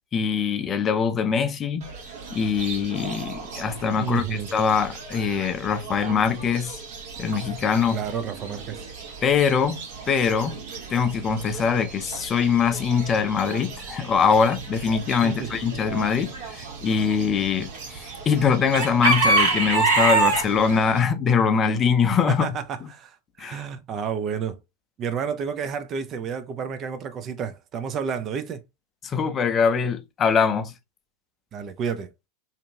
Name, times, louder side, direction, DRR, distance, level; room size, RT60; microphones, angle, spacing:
voice 1, 0.1-1.9 2.3-6.8 7.2-8.0 9.2-10.6 10.9-22.5 23.4-23.6 29.0-30.7, left 6 dB, 30° left, 0.5 m, -23 dB
Chicken rooster / Bird, 1.8-21.0, right 3 dB, 60° right, 1.1 m, -30 dB
voice 2, 4.0-4.5 7.9-8.8 15.2-15.5 22.3-24.6 25.0-28.6 31.5-32.1, right 7 dB, 35° right, 0.4 m, -30 dB
2.7 x 2.6 x 2.5 m
hypercardioid pair, 95°, 0 cm